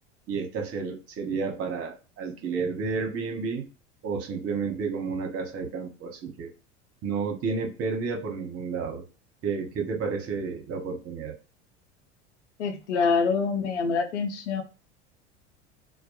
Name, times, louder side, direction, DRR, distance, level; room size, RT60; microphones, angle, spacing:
voice 1, 0.3-3.6 4.0-6.5 7.0-9.0 9.4-11.4, right 5 dB, 45° right, 2 dB, 0.9 m, -31 dB
voice 2, 12.6-14.6, left 5 dB, 85° left, 7 dB, 0.6 m, -25 dB
2.2 x 2.1 x 2.8 m, 0.34 s
hypercardioid pair, 85°, 34 cm